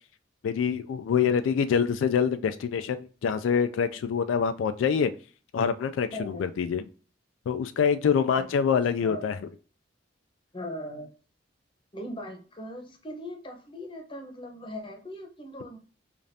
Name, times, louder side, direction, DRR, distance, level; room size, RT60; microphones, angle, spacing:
voice 1, 0.4-5.1 5.5-6.8 7.5-9.4, left 7 dB, 90° left, 10 dB, 0.3 m, -25 dB
voice 2, 6.1-6.4 8.3-8.4 9.0-9.3 10.5-11.1 11.9-15.8, left 1 dB, 25° left, 4 dB, 0.8 m, -39 dB
5.0 x 2.5 x 2.7 m, 0.37 s
head